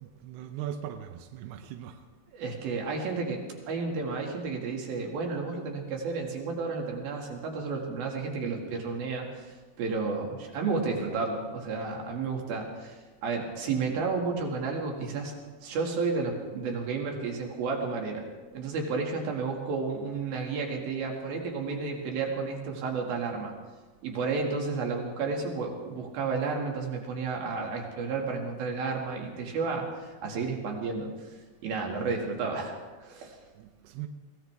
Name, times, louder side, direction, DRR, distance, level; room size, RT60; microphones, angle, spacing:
voice 1, 0.0-2.0 33.6-34.1, right 10 dB, 80° right, 2.3 m, -39 dB
voice 2, 2.3-13.0 13.2-15.3 15.6-18.2 18.5-23.5 24.0-31.3 31.6-32.8 33.0-33.4, right 4 dB, 60° right, 3.6 m, -32 dB
23.5 x 17.5 x 3.5 m
omnidirectional pair, 5.4 m